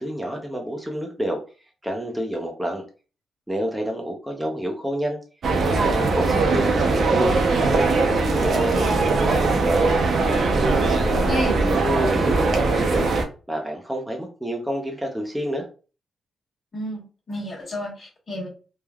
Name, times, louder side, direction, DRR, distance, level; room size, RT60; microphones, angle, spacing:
voice 1, 0.0-1.4 1.8-2.8 3.5-5.2 5.6-7.3 7.6-9.9 10.5-13.1 13.5-15.7, equal, 10° right, 1 dB, 0.5 m, -29 dB
sound 1, 5.4-13.2, right 3 dB, 60° right, 0.6 m, -20 dB
voice 2, 11.2-11.6 16.7-17.0 17.3-18.5, left 1 dB, 40° left, -1 dB, 1.2 m, -30 dB
3.2 x 2.2 x 2.2 m, 0.35 s
cardioid pair, 130°, 0 cm